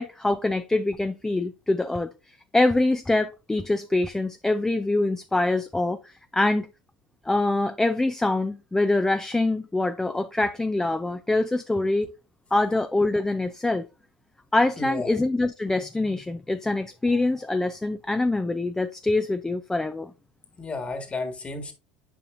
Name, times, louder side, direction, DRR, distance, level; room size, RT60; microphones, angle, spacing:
voice 1, 0.0-2.1 2.5-6.7 7.3-12.1 12.5-13.8 14.5-20.1, left 2 dB, 10° left, 0.4 m, -24 dB
voice 2, 14.8-15.1 20.6-21.7, left 3 dB, 25° left, 1.8 m, -32 dB
8.5 x 5.2 x 2.5 m
hypercardioid pair, 70°, 5 cm